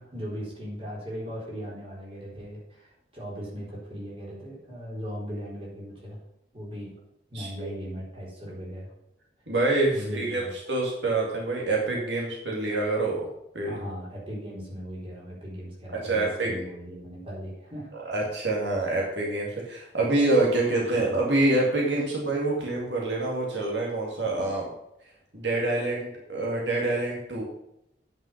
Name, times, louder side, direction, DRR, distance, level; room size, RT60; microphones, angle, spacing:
voice 1, 0.0-6.2 6.5-6.9 7.3-8.9 9.9-10.5 13.7-17.9, equal, 30° right, -5 dB, 4.1 m, -38 dB
voice 2, 7.3-7.7 9.5-13.3 13.5-13.8 15.9-16.5 17.9-24.7 25.3-27.4, right 2 dB, 75° right, -2 dB, 2.2 m, -26 dB
9.6 x 5.6 x 5.8 m, 0.82 s
head